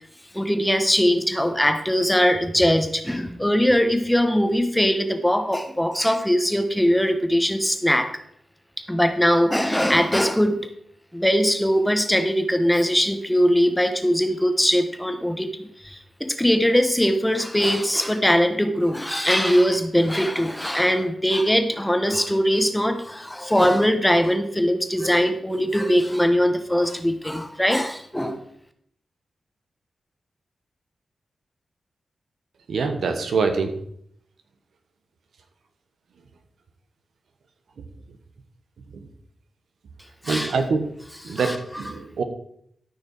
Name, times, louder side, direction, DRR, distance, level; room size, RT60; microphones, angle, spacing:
voice 1, 0.3-8.1 8.9-10.7 11.1-28.4 40.2-40.5 41.2-41.9, equal, 5° left, 7 dB, 1.1 m, -21 dB
voice 2, 32.7-33.7 38.9-39.0 40.3-40.8 41.2-42.2, right 4 dB, 85° right, 6 dB, 1.2 m, -24 dB
13.5 x 5.6 x 4.5 m, 0.68 s
wide cardioid pair, 100°, 0 cm